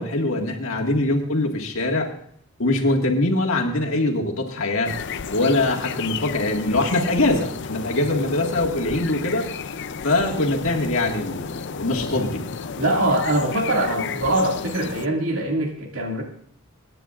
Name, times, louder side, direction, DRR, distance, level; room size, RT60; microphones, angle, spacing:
voice 1, 0.0-2.1 2.6-5.0 5.3-9.5 10.0-12.4, left 2 dB, 75° left, 1 dB, 1.8 m, -23 dB
sound 1, 4.8-15.1, left 6 dB, 55° left, 0.5 m, -33 dB
voice 2, 12.8-16.2, right 1 dB, 80° right, 1 dB, 2.2 m, -23 dB
24.5 x 9.8 x 2.5 m, 0.64 s
head